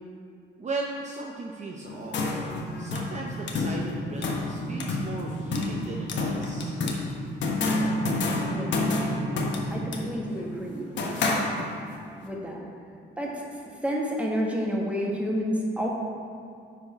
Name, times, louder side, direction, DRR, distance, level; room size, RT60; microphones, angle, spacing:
voice 1, 0.6-6.8, right 3 dB, 35° right, -1 dB, 0.7 m, -37 dB
sound 1, 1.9-12.0, left 2 dB, 65° left, 1.1 m, -29 dB
voice 2, 8.4-8.9 9.7-11.3 12.2-12.6 13.2-15.9, equal, 5° right, -2 dB, 1.5 m, -30 dB
10.0 x 4.8 x 4.3 m, 2.3 s
cardioid pair, 90°, 20 cm